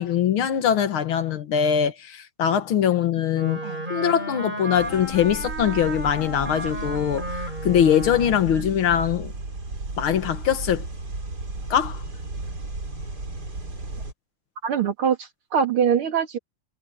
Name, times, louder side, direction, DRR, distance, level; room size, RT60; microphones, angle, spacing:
voice 1, 0.0-3.6 3.9-9.3 10.0-10.9 11.7-12.0, left 9 dB, 70° left, 2.1 m, -22 dB
Wind instrument woodwind instrument, 3.3-8.7, right 1 dB, 20° right, 5.2 m, -33 dB
sound 1, 4.7-14.1, right 2 dB, 45° right, 4.5 m, -34 dB
voice 2, 14.6-16.4, right 7 dB, 75° right, 3.1 m, -23 dB
omnidirectional pair, 2.4 m